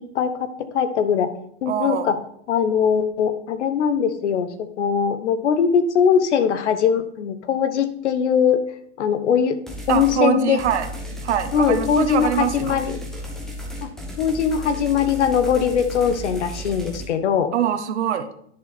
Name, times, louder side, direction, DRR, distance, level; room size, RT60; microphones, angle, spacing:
voice 1, 0.1-1.3 1.6-2.2 2.5-8.6 9.0-9.6 9.9-10.6 11.5-12.9 13.8-13.9 14.2-17.5, left 7 dB, 75° left, 11 dB, 1.2 m, -21 dB
voice 2, 1.7-2.1 9.9-10.9 11.2-12.8 17.5-18.3, right 10 dB, 70° right, 10 dB, 1.1 m, -23 dB
sound 1, 9.7-10.2 10.6-17.1, equal, ahead, 1.3 m, -34 dB
10.0 x 6.7 x 4.2 m, 0.67 s
supercardioid pair, 160°, 35 cm